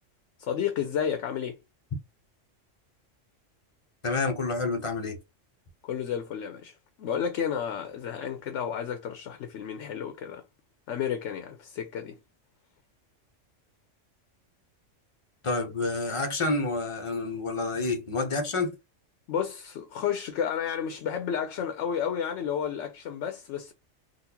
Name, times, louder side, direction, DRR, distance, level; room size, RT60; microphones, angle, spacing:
voice 1, 0.4-1.6 5.8-10.4 10.9-12.2 19.3-23.7, left 8 dB, 75° left, 0.9 m, -31 dB
voice 2, 4.0-5.2 15.4-18.7, left 3 dB, 35° left, 0.6 m, -28 dB
3.8 x 2.4 x 2.8 m
omnidirectional pair, 1.3 m